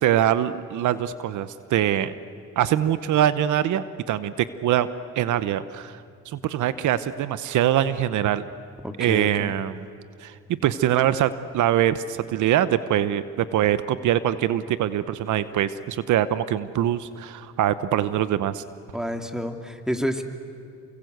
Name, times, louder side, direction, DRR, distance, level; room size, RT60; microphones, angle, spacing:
voice 1, 0.0-2.1 2.6-4.3 4.6-4.9 5.2-6.0 6.3-8.4 9.0-9.8 10.2-10.3 10.6-18.6, right 11 dB, 75° right, 14 dB, 1.0 m, -23 dB
voice 2, 8.8-9.5 18.9-20.2, equal, ahead, 5 dB, 2.4 m, -29 dB
29.0 x 25.0 x 8.1 m, 2.2 s
cardioid pair, 90°, 30 cm